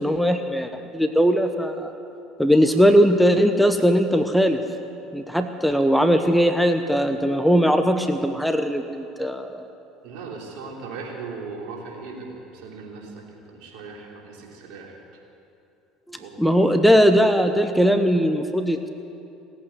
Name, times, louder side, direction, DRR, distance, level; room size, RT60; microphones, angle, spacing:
voice 1, 0.0-1.9 2.4-4.6 5.1-9.7 16.1-18.9, equal, ahead, 7 dB, 1.0 m, -19 dB
voice 2, 2.5-2.9 10.0-15.0 16.2-16.5, right 4 dB, 65° right, -1 dB, 3.3 m, -38 dB
17.5 x 8.7 x 9.4 m, 2.7 s
hypercardioid pair, 70°, 0 cm